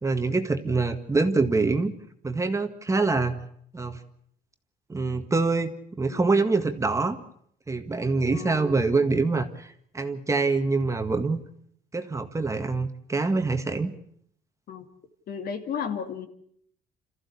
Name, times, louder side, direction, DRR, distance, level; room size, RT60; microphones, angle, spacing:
voice 1, 0.0-1.9 2.2-3.4 3.7-4.0 4.9-7.2 7.7-11.4 11.9-13.9, right 3 dB, 15° right, 7 dB, 1.8 m, -25 dB
voice 2, 15.3-16.3, left 7 dB, 60° left, 7 dB, 2.7 m, -33 dB
27.5 x 14.5 x 8.4 m, 0.66 s
cardioid pair, 110°, 17 cm